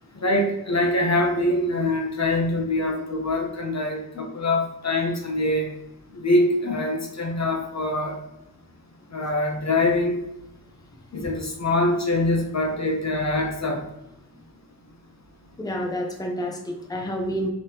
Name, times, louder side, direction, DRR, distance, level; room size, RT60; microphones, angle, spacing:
voice 1, 0.2-5.7 6.1-8.2 9.1-10.2 11.1-13.8, left 1 dB, 45° left, 2 dB, 0.7 m, -24 dB
voice 2, 15.6-17.5, equal, 10° left, 1 dB, 0.7 m, -29 dB
3.5 x 3.1 x 2.9 m, 0.87 s
wide cardioid pair, 45°, 37 cm